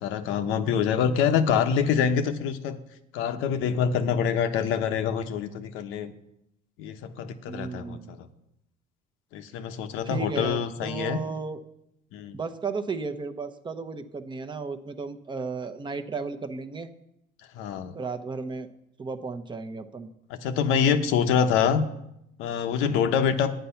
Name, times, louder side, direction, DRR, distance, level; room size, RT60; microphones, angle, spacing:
voice 1, 0.0-2.8 3.1-6.1 6.8-8.3 9.3-11.2 12.1-12.4 17.5-17.9 20.4-21.8 22.4-23.5, left 7 dB, 80° left, 8 dB, 1.0 m, -25 dB
voice 2, 7.5-8.2 10.0-11.6 12.3-16.9 17.9-18.7 19.0-20.1, right 4 dB, 20° right, 7 dB, 0.8 m, -34 dB
9.3 x 9.2 x 5.7 m, 0.81 s
cardioid pair, 125°, 21 cm